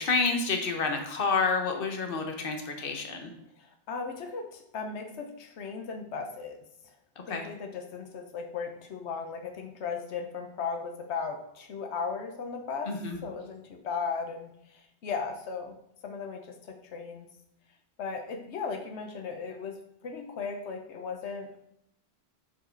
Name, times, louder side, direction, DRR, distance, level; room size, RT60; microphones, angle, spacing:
voice 1, 0.0-3.3 7.3-7.4 12.9-13.2, left 4 dB, 55° left, 4 dB, 1.2 m, -29 dB
voice 2, 3.6-6.6 7.3-12.9 13.2-15.7 16.0-17.3 18.0-21.6, left 5 dB, 90° left, 4 dB, 1.1 m, -36 dB
7.4 x 4.7 x 4.4 m, 0.77 s
omnidirectional pair, 1.1 m